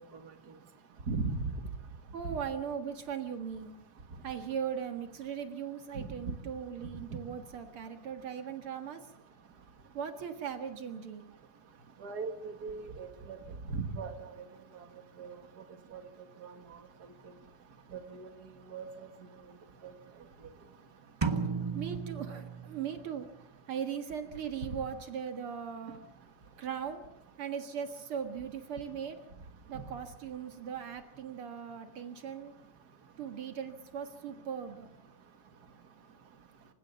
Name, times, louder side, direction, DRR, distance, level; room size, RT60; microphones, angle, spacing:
voice 1, 1.1-1.5 5.9-6.1 12.0-13.4 13.7-14.3 15.2-15.4 15.9-16.0 16.4-16.5 17.9-18.3 18.7-19.1 19.8-19.9, right 4 dB, 45° right, 7 dB, 2.5 m, -37 dB
voice 2, 2.1-3.7 4.2-9.0 9.9-11.2 21.7-23.3 23.7-26.0 26.6-27.0 27.4-29.2 29.7-32.5 33.2-34.9, right 7 dB, 75° right, 8 dB, 2.6 m, -39 dB
sound 1, 21.2-23.1, right 5 dB, 20° right, 0.6 m, -34 dB
27.5 x 16.5 x 7.0 m, 0.83 s
omnidirectional pair, 2.4 m